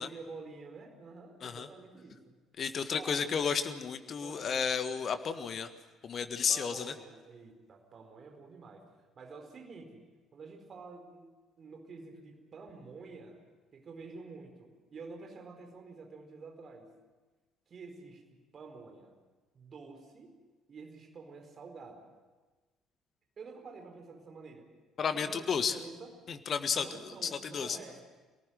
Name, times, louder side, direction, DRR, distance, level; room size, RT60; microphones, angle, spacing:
voice 1, 0.0-2.3 2.9-3.2 4.2-4.5 6.5-8.8 9.2-10.1 10.3-11.3 11.6-13.4 13.7-16.9 17.7-19.1 19.5-20.4 20.7-22.1 23.4-24.7 25.1-26.1 26.7-28.0, right 4 dB, 40° right, 4 dB, 4.6 m, -49 dB
voice 2, 2.6-5.7 6.0-6.9 25.0-25.8 26.3-27.8, left 6 dB, 40° left, 9 dB, 1.6 m, -32 dB
27.0 x 18.5 x 7.7 m, 1.3 s
figure-of-eight pair, 50°, 0 cm